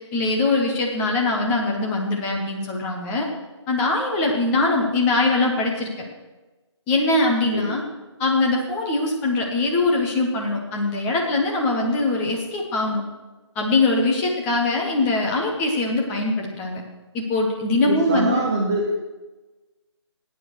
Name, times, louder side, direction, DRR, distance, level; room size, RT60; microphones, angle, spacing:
voice 1, 0.1-3.3 3.7-5.9 6.9-7.8 8.2-13.0 13.5-16.8 17.1-18.4, left 2 dB, 10° left, 0 dB, 1.2 m, -22 dB
voice 2, 17.8-18.9, right 2 dB, 10° right, 0 dB, 0.4 m, -24 dB
13.5 x 9.7 x 6.4 m, 1.2 s
figure-of-eight pair, 155°, 15 cm